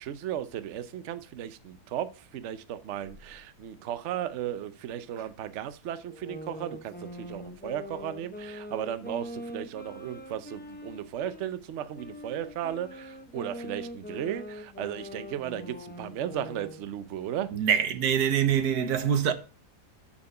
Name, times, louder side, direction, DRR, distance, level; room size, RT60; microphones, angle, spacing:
voice 1, 0.0-17.5, right 11 dB, 60° right, 0.9 m, -35 dB
sound 1, 6.1-11.5 11.9-16.8, left 1 dB, 15° left, 0.4 m, -42 dB
voice 2, 17.5-19.3, right 8 dB, 80° right, 1.5 m, -24 dB
6.8 x 5.7 x 6.5 m
omnidirectional pair, 1.7 m